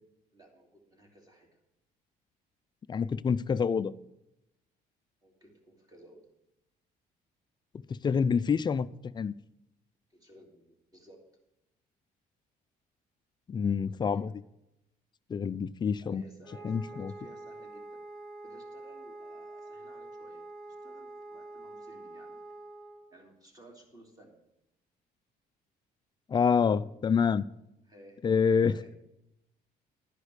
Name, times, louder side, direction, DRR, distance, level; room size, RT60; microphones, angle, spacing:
voice 1, 0.3-1.5 5.2-6.3 10.1-11.2 13.9-14.3 16.0-22.4 23.1-24.3 27.9-28.2 28.7-29.0, right 1 dB, 20° right, 2.8 m, -57 dB
voice 2, 2.9-3.9 7.9-9.4 13.5-14.3 15.3-16.2 16.6-17.1 26.3-27.5 28.2-28.8, left 6 dB, 25° left, 0.4 m, -27 dB
Wind instrument woodwind instrument, 16.4-23.1, right 2 dB, 5° left, 2.9 m, -46 dB
11.5 x 5.0 x 8.0 m
cardioid pair, 110°, 17 cm